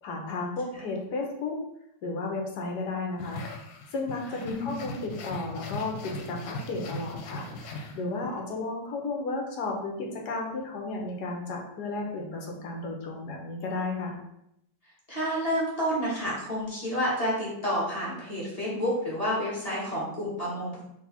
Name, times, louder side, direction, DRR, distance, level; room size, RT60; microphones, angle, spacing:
voice 1, 0.0-1.6 2.0-3.4 3.9-14.2, left 3 dB, 65° left, 0 dB, 1.3 m, -33 dB
sound 1, 3.2-8.4, left 2 dB, 90° left, 1.3 m, -39 dB
voice 2, 4.3-4.8 15.1-20.8, equal, 20° left, -8 dB, 1.6 m, -29 dB
3.9 x 2.7 x 4.1 m, 0.79 s
omnidirectional pair, 2.0 m